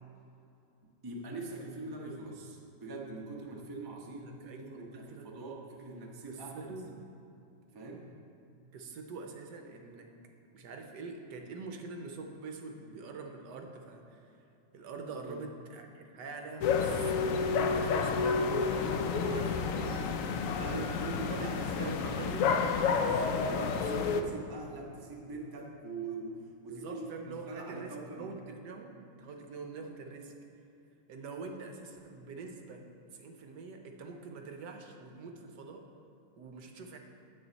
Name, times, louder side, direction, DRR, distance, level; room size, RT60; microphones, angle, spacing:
voice 1, 1.0-6.7 7.7-8.1 15.2-15.4 20.5-22.2 23.0-28.3, right 2 dB, 25° right, -1 dB, 0.5 m, -43 dB
voice 2, 4.1-5.3 6.3-6.9 8.7-10.1 10.5-14.4 14.7-20.0 20.5-22.6 26.7-30.3 31.1-35.9 36.4-37.0, right 4 dB, 70° right, 4 dB, 1.3 m, -45 dB
sound 1, 16.6-24.2, left 5 dB, 85° left, 0.7 m, -30 dB
9.0 x 8.0 x 4.0 m, 2.8 s
omnidirectional pair, 2.0 m